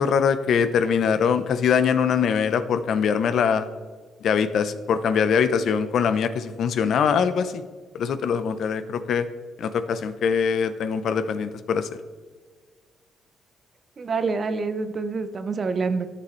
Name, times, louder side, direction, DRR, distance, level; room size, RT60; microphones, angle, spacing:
voice 1, 0.0-3.7 4.2-7.6 7.9-9.3 9.6-11.9, left 6 dB, 65° left, 12 dB, 0.5 m, -22 dB
voice 2, 14.0-16.1, right 4 dB, 40° right, 10 dB, 0.6 m, -26 dB
11.0 x 6.9 x 3.1 m, 1.5 s
cardioid pair, 90°, 0 cm